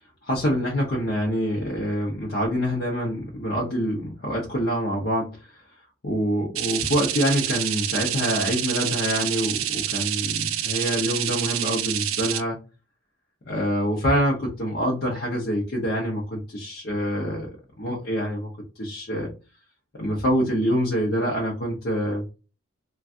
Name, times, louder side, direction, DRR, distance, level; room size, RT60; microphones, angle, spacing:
voice 1, 0.2-5.6 6.0-12.6 13.4-18.5 18.8-19.3 19.9-22.3, equal, 50° left, -4 dB, 0.7 m, -26 dB
sound 1, 6.5-12.4, right 12 dB, 75° right, 0.3 m, -27 dB
2.5 x 2.3 x 3.5 m, 0.32 s
head